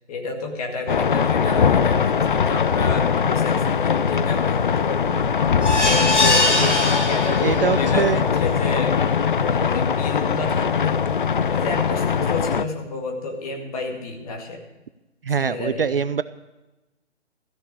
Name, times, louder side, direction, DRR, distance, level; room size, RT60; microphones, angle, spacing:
voice 1, 0.1-5.4 5.8-9.0 9.4-11.0 11.5-14.6 15.4-16.0, left 3 dB, 30° left, 3 dB, 2.0 m, -30 dB
sound 1, 0.9-12.6, left 7 dB, 45° left, 0.5 m, -21 dB
sound 2, 5.6-7.9 8.3-8.4 8.8-8.9, left 1 dB, 75° left, 2.5 m, -21 dB
voice 2, 7.4-8.2 15.2-16.2, right 6 dB, 50° right, 15 dB, 0.5 m, -23 dB
14.0 x 7.0 x 8.6 m, 1.0 s
figure-of-eight pair, 140°, 35 cm